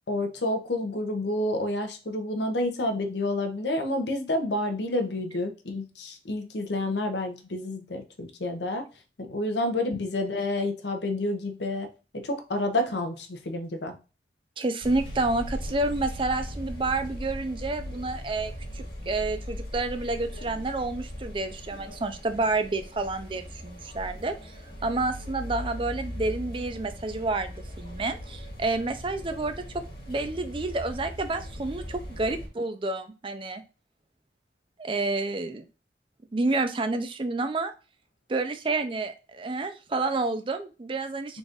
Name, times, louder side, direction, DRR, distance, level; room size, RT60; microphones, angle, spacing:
voice 1, 0.1-8.8 9.2-11.9 12.1-13.9, left 1 dB, 80° left, 6 dB, 0.8 m, -29 dB
voice 2, 14.6-24.5 24.8-29.6 30.1-33.6 34.8-35.6 36.3-37.7 38.3-41.4, right 2 dB, 30° right, 9 dB, 0.4 m, -29 dB
sound 1, 14.8-32.5, equal, 55° left, 1.6 m, -39 dB
4.0 x 2.5 x 3.5 m, 0.31 s
head